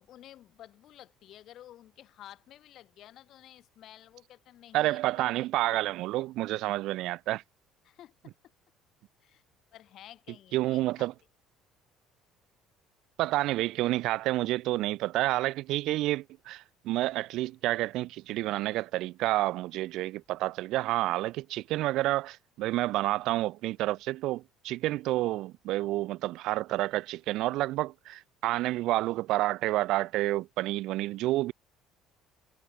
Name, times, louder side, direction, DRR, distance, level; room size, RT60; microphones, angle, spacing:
voice 1, 0.0-5.5 7.8-8.3 9.2-9.4 9.7-11.1, left 12 dB, 60° left, 4.9 m, -52 dB
voice 2, 4.7-7.4 10.5-11.1 13.2-31.5, right 17 dB, 65° right, 0.5 m, -29 dB
hypercardioid pair, 65°, 0 cm